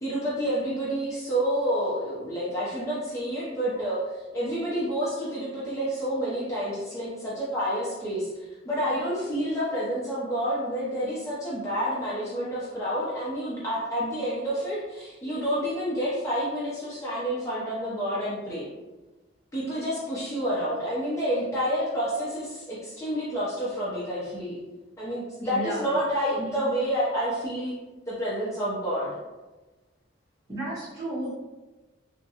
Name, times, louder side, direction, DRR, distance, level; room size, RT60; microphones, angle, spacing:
voice 1, 0.0-18.7 19.5-24.6 25.0-27.7 28.1-29.1, equal, 15° left, -9 dB, 0.5 m, -29 dB
voice 2, 25.4-25.9 30.5-31.3, right 1 dB, 20° right, -9 dB, 1.2 m, -32 dB
3.5 x 2.1 x 2.7 m, 1.2 s
head